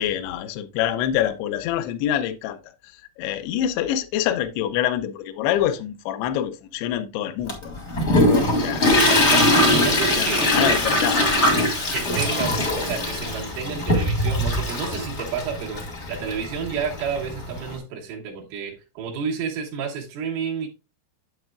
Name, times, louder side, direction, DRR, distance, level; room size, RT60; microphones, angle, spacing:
voice 1, 0.0-2.6 2.8-7.7 8.6-8.9 9.5-9.8 10.1-11.3, left 11 dB, 85° left, 2.3 m, -26 dB
Toilet flush, 7.5-17.7, left 1 dB, 50° left, 0.8 m, -21 dB
voice 2, 8.9-10.8 11.9-20.7, right 6 dB, 80° right, 3.7 m, -30 dB
8.0 x 7.8 x 2.4 m
omnidirectional pair, 5.6 m